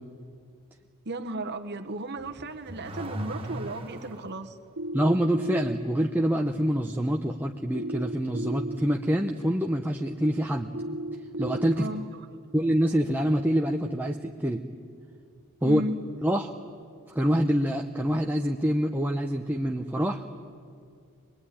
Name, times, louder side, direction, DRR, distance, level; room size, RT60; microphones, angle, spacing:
voice 1, 1.0-4.6 11.8-12.0 15.6-16.0, right 1 dB, 50° right, 6 dB, 1.2 m, -34 dB
Car / Accelerating revving vroom, 2.1-4.4, equal, 25° right, 1.6 m, -38 dB
sound 1, 4.8-5.7 7.7-8.7 10.7-11.7, right 1 dB, 85° right, 1.1 m, -33 dB
voice 2, 4.9-10.7 11.4-11.9 12.5-14.6 15.6-15.8 16.2-16.6 17.1-20.4, equal, 10° right, 2 dB, 0.8 m, -26 dB
24.5 x 20.5 x 10.0 m, 2.3 s
head